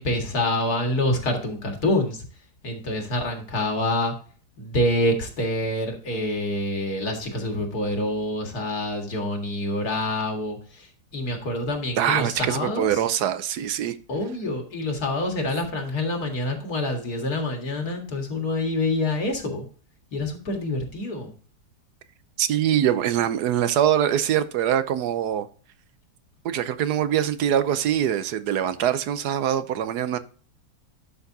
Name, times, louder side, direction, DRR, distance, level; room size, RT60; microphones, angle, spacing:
voice 1, 0.0-2.3 2.6-4.1 4.6-13.0 14.1-19.7 20.1-21.3, left 1 dB, 65° left, 2.5 m, -26 dB
voice 2, 12.0-14.0 22.4-25.5 26.4-30.2, right 10 dB, 75° right, 1.3 m, -23 dB
11.5 x 6.0 x 2.8 m
omnidirectional pair, 1.8 m